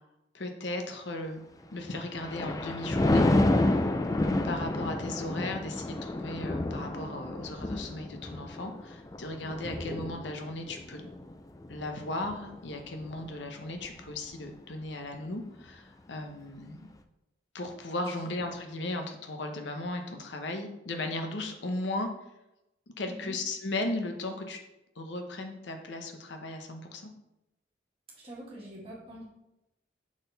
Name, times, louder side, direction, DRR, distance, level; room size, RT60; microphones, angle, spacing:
voice 1, 0.3-1.4 1.7-3.3 4.4-11.0 11.7-16.9 17.5-22.1 23.0-24.6 25.0-27.1, left 2 dB, 75° left, 4 dB, 0.8 m, -36 dB
Thunder, 1.8-13.3 13.8-14.1, left 2 dB, 20° left, 0.3 m, -30 dB
voice 2, 23.1-23.4 28.2-29.3, right 1 dB, 30° right, -5 dB, 2.0 m, -45 dB
6.1 x 4.2 x 3.9 m, 0.90 s
head